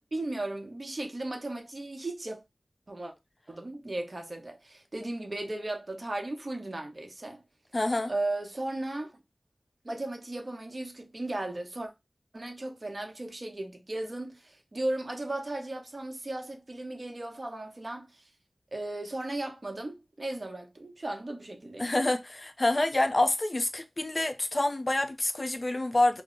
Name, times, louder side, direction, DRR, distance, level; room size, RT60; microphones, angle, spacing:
voice 1, 0.1-2.4 2.9-3.1 3.5-7.4 8.1-9.1 9.8-11.9 12.3-18.2 18.7-21.9, right 2 dB, 50° right, 0.7 m, -36 dB
voice 2, 7.7-8.1 21.8-26.2, left 2 dB, 45° left, 0.4 m, -27 dB
2.0 x 2.0 x 3.6 m
cardioid pair, 40°, 0 cm